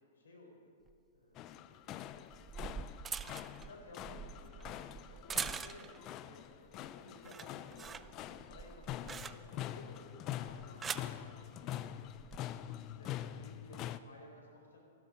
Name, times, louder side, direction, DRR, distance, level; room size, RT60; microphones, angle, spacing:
voice 1, 0.2-0.7 1.1-2.0 3.2-3.3 3.6-5.9 6.2-12.1 13.0-14.8, left 2 dB, 85° left, 1 dB, 4.0 m, -57 dB
sound 1, 0.9-1.0 2.1-6.1 6.5-6.9 7.2-9.7 10.5-11.2 12.1-12.4, right 6 dB, 20° right, 0.4 m, -44 dB
sound 2, 1.3-14.0, left 12 dB, 35° left, 0.5 m, -45 dB
16.5 x 12.0 x 5.2 m, 2.5 s
hypercardioid pair, 125°, 0 cm